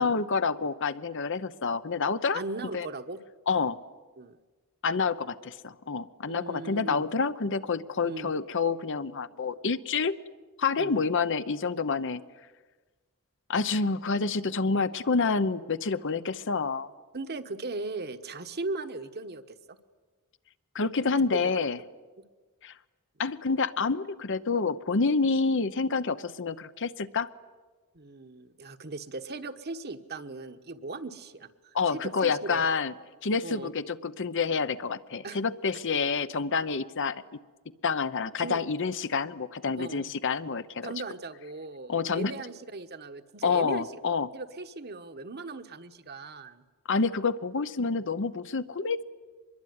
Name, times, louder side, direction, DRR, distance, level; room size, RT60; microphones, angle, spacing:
voice 1, 0.0-2.4 2.7-2.9 3.5-3.8 4.8-10.1 10.6-12.2 13.5-16.9 20.7-21.8 22.6-22.7 23.2-27.3 31.7-32.9 33.2-37.2 37.8-40.9 41.9-42.3 43.4-44.3 46.9-49.0, left 4 dB, 60° left, 13 dB, 0.9 m, -28 dB
voice 2, 2.3-3.2 4.2-4.4 6.2-7.1 8.0-8.3 10.8-11.0 17.1-19.8 21.3-21.4 25.2-25.4 27.9-32.6 33.4-33.7 35.2-35.4 38.4-38.6 39.8-40.1 40.8-43.9 44.3-46.6, right 3 dB, 50° right, 8 dB, 1.3 m, -38 dB
24.5 x 22.0 x 9.6 m, 1.3 s
head